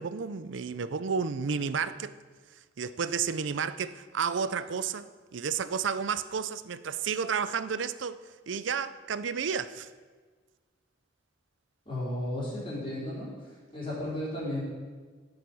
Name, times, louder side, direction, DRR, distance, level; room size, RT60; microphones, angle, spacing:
voice 1, 0.0-2.2 2.8-8.2 8.5-9.9, right 6 dB, 75° right, 0.5 m, -31 dB
voice 2, 11.9-13.3 13.7-14.6, left 1 dB, 30° left, 4.0 m, -33 dB
12.5 x 8.0 x 5.4 m
head